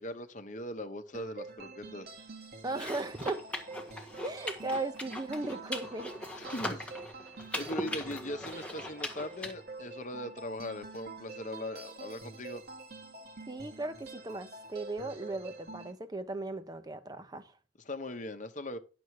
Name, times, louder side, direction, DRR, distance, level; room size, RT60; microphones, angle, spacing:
voice 1, 0.0-2.1 6.4-6.9 7.5-12.6 17.8-18.8, left 1 dB, 45° left, 1.0 m, -40 dB
sound 1, 1.1-15.9, right 3 dB, 60° right, 1.4 m, -47 dB
voice 2, 2.6-3.4 4.2-6.1 13.5-17.5, right 2 dB, 20° right, 0.7 m, -37 dB
sound 2, 2.7-9.5, left 1 dB, 5° left, 1.5 m, -40 dB
10.5 x 6.9 x 4.7 m
head